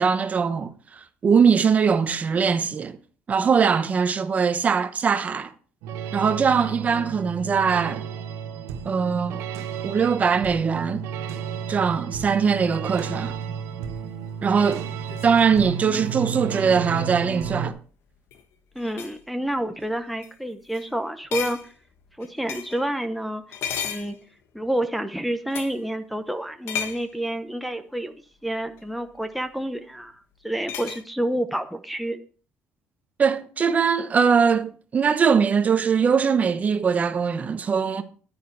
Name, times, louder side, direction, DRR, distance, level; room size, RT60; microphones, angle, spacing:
voice 1, 0.0-3.0 3.3-5.5 6.1-8.1 8.8-9.4 9.8-11.0 11.7-13.3 14.4-14.8 15.2-17.8 33.2-38.0, right 6 dB, 35° right, 1.0 m, -21 dB
sound 1, 5.8-17.7, right 8 dB, 85° right, 1.1 m, -32 dB
sound 2, 13.3-17.1 18.1-18.4 18.8-19.2 19.8-19.9 20.2-20.3 20.7-20.9 21.3-22.9 23.5-24.7 25.5-25.8 26.7-27.1 28.8-28.9 30.7-31.0, left 8 dB, 65° left, 1.3 m, -35 dB
voice 2, 18.7-21.7 22.2-23.4 23.8-24.2 24.5-28.1 28.4-32.2, right 1 dB, ahead, 0.9 m, -29 dB
9.9 x 9.4 x 4.7 m
cardioid pair, 125°, 5 cm